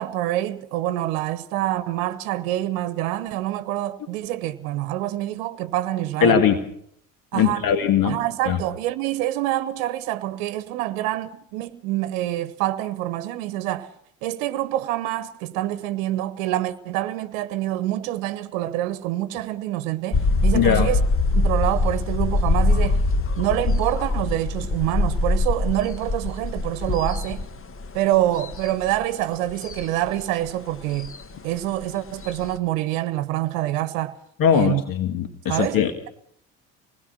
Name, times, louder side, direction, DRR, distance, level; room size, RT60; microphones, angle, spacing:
voice 1, 0.0-6.4 7.3-7.7 8.0-13.9 14.2-21.0 21.3-23.0 23.4-27.4 27.9-31.1 31.4-34.2 34.5-34.8 35.5-36.1, right 14 dB, 75° right, 1.0 m, -26 dB
voice 2, 6.2-6.6 7.3-8.2 8.5-8.6 20.5-20.9 34.4-36.1, left 8 dB, 55° left, 2.0 m, -20 dB
sound 1, 20.1-32.6, left 2 dB, 35° left, 1.6 m, -24 dB
26.0 x 20.0 x 5.9 m
hypercardioid pair, 55°, 40 cm